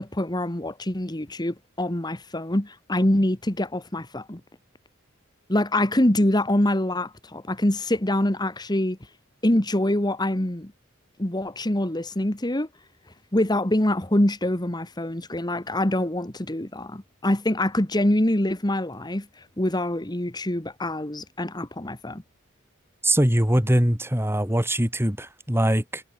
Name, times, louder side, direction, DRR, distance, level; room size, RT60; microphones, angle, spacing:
voice 1, 0.0-4.4 5.5-9.0 9.4-10.7 11.2-12.7 13.3-19.3 19.6-22.2, left 1 dB, 20° left, 1.6 m, -25 dB
voice 2, 23.0-26.0, right 1 dB, 10° right, 2.9 m, -22 dB
head